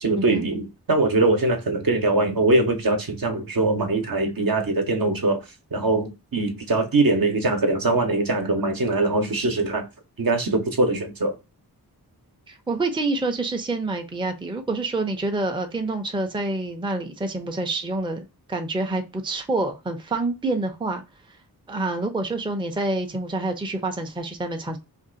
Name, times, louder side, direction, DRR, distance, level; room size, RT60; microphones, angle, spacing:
voice 1, 0.0-5.4 5.7-9.8 10.2-11.4, right 2 dB, 60° right, 0.8 m, -22 dB
voice 2, 12.5-21.0 21.7-24.8, right 2 dB, 15° right, 0.5 m, -27 dB
2.6 x 2.4 x 3.8 m
wide cardioid pair, 70°, 40 cm